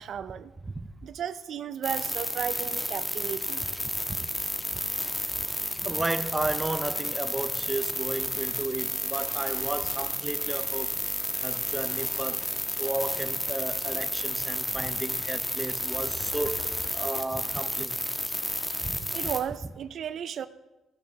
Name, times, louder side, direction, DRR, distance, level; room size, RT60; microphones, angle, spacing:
voice 1, 0.0-0.5 1.0-3.6 19.1-20.5, right 8 dB, 65° right, 0.4 m, -34 dB
sound 1, 1.8-19.4, left 1 dB, 15° left, 1.5 m, -31 dB
voice 2, 5.8-11.0 11.3-12.5 12.8-18.0 18.8-19.1, right 2 dB, 20° right, 0.6 m, -33 dB
sound 2, 12.5-12.6 12.9-13.2 13.5-13.6 15.9-17.0, left 5 dB, 60° left, 1.1 m, -45 dB
13.5 x 6.9 x 6.5 m
cardioid pair, 90°, 0 cm